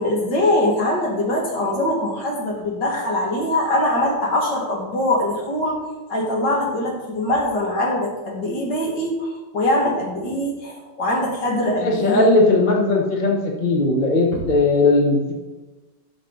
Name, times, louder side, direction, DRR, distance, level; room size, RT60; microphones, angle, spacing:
voice 1, 0.0-5.8 6.1-12.3 14.3-14.4, left 1 dB, 60° left, -2 dB, 2.8 m, -22 dB
voice 2, 11.8-15.3, left 2 dB, 30° left, 1 dB, 1.1 m, -18 dB
12.5 x 6.5 x 4.1 m, 1.2 s
omnidirectional pair, 2.2 m